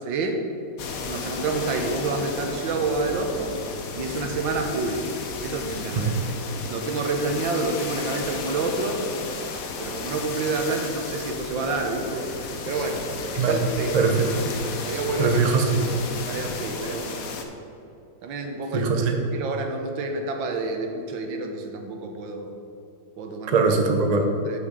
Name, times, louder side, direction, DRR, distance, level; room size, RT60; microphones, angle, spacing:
voice 1, 0.1-0.4 1.1-3.5 4.0-5.1 5.4-6.3 6.7-9.0 9.8-12.3 12.7-13.1 13.3-14.0 14.8-15.4 16.3-17.4 18.2-18.9 19.3-22.5 23.2-23.6 24.5-24.6, right 3 dB, 90° right, 4 dB, 1.6 m, -28 dB
sound 1, 0.8-17.4, left 4 dB, 60° left, 1.1 m, -34 dB
voice 2, 13.9-14.3 15.2-16.0 18.7-19.2 23.5-24.3, right 4 dB, 65° right, 4 dB, 0.4 m, -21 dB
6.5 x 5.9 x 6.6 m, 2.8 s
omnidirectional pair, 2.0 m